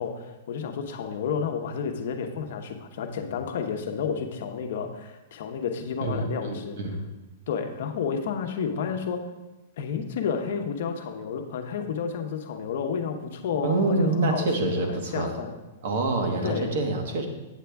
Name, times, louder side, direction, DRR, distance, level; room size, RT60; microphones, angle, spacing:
voice 1, 0.0-6.8 7.5-9.2 9.8-15.5 16.4-16.8, left 6 dB, 55° left, 5 dB, 0.9 m, -31 dB
voice 2, 6.0-7.0 13.6-15.3 15.8-17.3, right 2 dB, 55° right, 3 dB, 1.3 m, -26 dB
8.3 x 8.2 x 3.5 m, 1.1 s
supercardioid pair, 175°, 0 cm